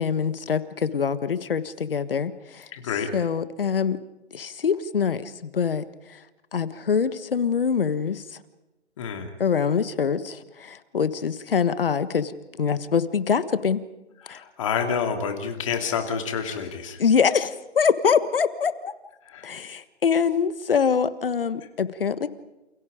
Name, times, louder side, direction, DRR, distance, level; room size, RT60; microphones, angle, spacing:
voice 1, 0.0-2.7 3.1-4.0 4.3-5.8 6.5-8.2 9.4-12.3 12.6-13.8 14.3-14.4 17.0-18.7 19.4-22.3, left 6 dB, 50° left, 13 dB, 1.6 m, -24 dB
voice 2, 2.7-3.1 9.0-9.3 14.2-17.0 19.3-19.5, left 6 dB, 25° left, 5 dB, 2.8 m, -28 dB
29.0 x 28.5 x 5.1 m, 0.98 s
hypercardioid pair, 165°, 35 cm